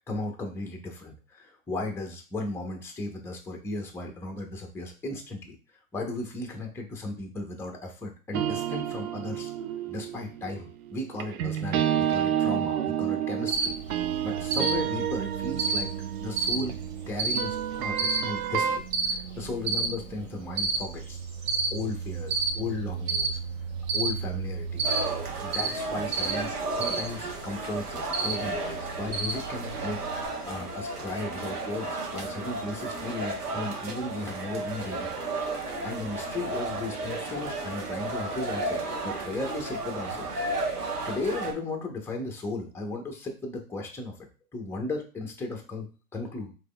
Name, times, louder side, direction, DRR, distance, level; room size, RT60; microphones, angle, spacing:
voice 1, 0.1-5.6 5.9-9.5 9.9-13.8 14.2-15.9 16.2-18.0 18.2-21.2 21.7-23.4 23.9-24.9 25.4-35.1 35.8-40.5 41.0-44.1 44.5-46.5, left 2 dB, 5° left, 1 dB, 0.7 m, -36 dB
sound 1, 8.3-18.8, right 10 dB, 65° right, 0.5 m, -30 dB
Cricket, 13.5-30.3, right 4 dB, 35° right, 0.8 m, -32 dB
sound 2, 24.8-41.5, right 2 dB, 90° right, 1.1 m, -33 dB
4.9 x 3.2 x 2.2 m, 0.34 s
hypercardioid pair, 120°, 45 cm